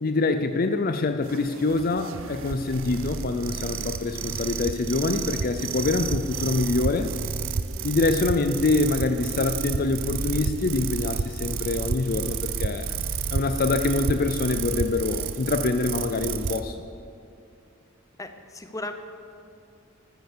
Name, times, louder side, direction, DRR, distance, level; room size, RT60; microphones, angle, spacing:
voice 1, 0.0-7.1 7.8-12.9 13.3-16.8, left 3 dB, 45° left, 8 dB, 0.5 m, -25 dB
sound 1, 1.2-16.6, right 5 dB, 70° right, 0.7 m, -31 dB
voice 2, 18.2-18.9, left 2 dB, 15° left, 7 dB, 0.9 m, -36 dB
13.5 x 11.0 x 6.8 m, 2.5 s
head